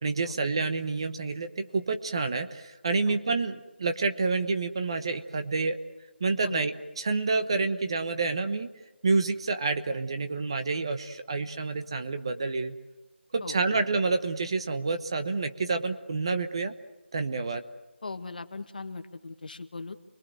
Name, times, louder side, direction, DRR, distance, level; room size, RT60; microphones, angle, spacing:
voice 1, 0.0-5.8 6.2-8.7 9.0-12.8 13.3-16.7 17.1-17.6, right 3 dB, 25° right, 8 dB, 1.0 m, -28 dB
voice 2, 13.4-13.8 18.0-20.0, left 3 dB, 45° left, 9 dB, 1.6 m, -39 dB
30.0 x 21.5 x 7.8 m, 1.1 s
figure-of-eight pair, 175°, 7 cm